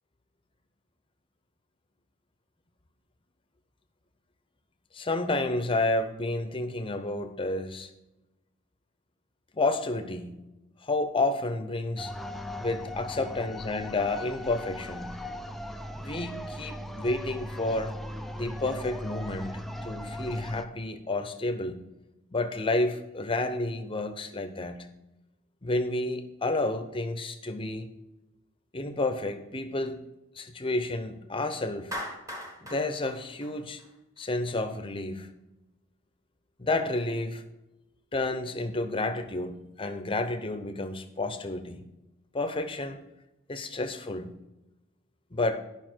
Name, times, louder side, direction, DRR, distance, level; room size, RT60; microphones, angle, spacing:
voice 1, 4.9-7.9 9.5-10.4 10.8-12.1 12.6-15.2 16.0-17.9 18.4-21.8 22.3-24.9 25.6-27.9 28.7-30.0 30.4-31.9 32.6-33.8 34.2-35.3 36.6-37.4 38.1-41.8 42.3-43.0 43.5-44.4 45.3-45.6, left 2 dB, 25° left, 8 dB, 0.8 m, -30 dB
sound 1, 12.0-20.6, left 1 dB, ahead, 0.4 m, -38 dB
Clapping, 31.9-34.2, equal, 15° right, 1.4 m, -39 dB
11.5 x 5.6 x 4.5 m, 0.96 s
head